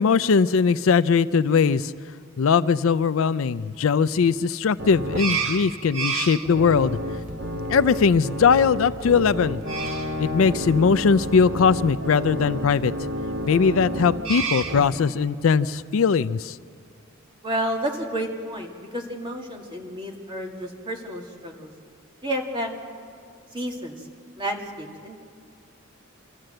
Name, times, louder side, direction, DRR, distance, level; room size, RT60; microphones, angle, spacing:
voice 1, 0.0-1.9 2.4-7.0 7.7-9.6 10.2-12.9 13.5-16.6, left 5 dB, 70° left, 15 dB, 0.4 m, -20 dB
sound 1, 4.8-14.9, right 2 dB, 65° right, 1.5 m, -30 dB
voice 2, 17.4-21.7 22.2-22.7 23.5-24.1 24.4-25.2, right 1 dB, 25° right, 1 dB, 2.2 m, -31 dB
25.5 x 14.0 x 7.8 m, 2.2 s
head